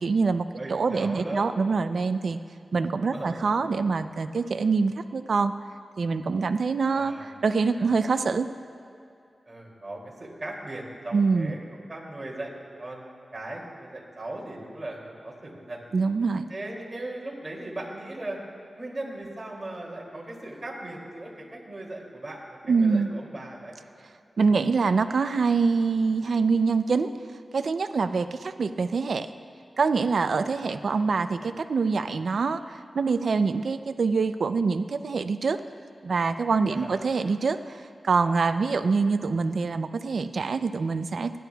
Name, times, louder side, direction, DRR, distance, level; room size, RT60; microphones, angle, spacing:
voice 1, 0.0-2.4 2.7-5.5 6.0-8.5 11.1-11.5 15.9-16.5 22.7-23.1 24.4-27.1 27.5-29.3 29.8-35.6 36.0-41.3, right 4 dB, 75° right, 10 dB, 0.5 m, -25 dB
voice 2, 0.6-1.4 3.0-3.4 6.9-7.3 7.7-7.9 9.5-13.1 13.3-15.8 16.5-18.4 18.7-23.7 28.1-28.3 30.6-31.0 31.4-31.5 36.7-37.0, right 1 dB, 30° right, -3 dB, 2.6 m, -38 dB
29.0 x 11.0 x 2.3 m, 2.6 s
wide cardioid pair, 100°, 0 cm